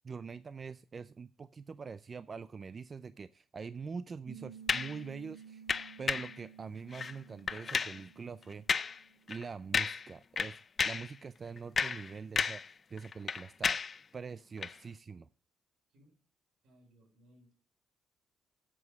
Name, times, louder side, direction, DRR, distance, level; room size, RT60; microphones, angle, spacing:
voice 1, 0.0-5.6 6.0-8.6 9.3-13.8 14.1-15.3, right 5 dB, 40° right, 14 dB, 0.4 m, -44 dB
Piano, 4.3-9.4, right 7 dB, 15° right, 2.4 m, -54 dB
sound 1, 4.7-5.0 5.7-6.4 6.9-7.2 7.5-8.0 8.7-9.0 9.3-9.4 9.7-10.1 10.4-11.1 11.6-12.7 13.0-14.0 14.6-14.8, left 5 dB, 40° left, 0.5 m, -32 dB
voice 2, 16.6-17.5, equal, 75° right, 2 dB, 5.2 m, -63 dB
8.0 x 7.6 x 6.3 m, 0.39 s
cardioid pair, 90°, 0 cm